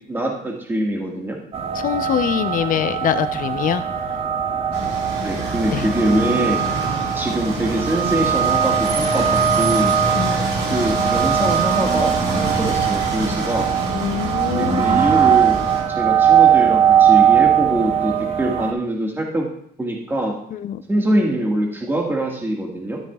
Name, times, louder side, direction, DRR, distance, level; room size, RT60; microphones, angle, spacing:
voice 1, 0.1-1.4 5.2-6.6 7.1-9.9 10.7-13.7 14.5-15.6 15.9-19.5 19.8-20.4 20.9-23.0, right 1 dB, 15° right, -1 dB, 1.7 m, -23 dB
sound 1, 1.5-18.7, right 8 dB, 35° right, 0.8 m, -20 dB
voice 2, 1.7-3.8 5.7-5.9 10.1-10.4 13.9-15.0 20.5-20.8, left 9 dB, 55° left, 11 dB, 0.6 m, -23 dB
sound 2, 4.7-15.8, right 2 dB, 75° right, 2.3 m, -27 dB
sound 3, 9.8-14.4, left 6 dB, 70° left, 1.4 m, -46 dB
12.5 x 7.4 x 2.4 m, 0.69 s
cardioid pair, 110°, 17 cm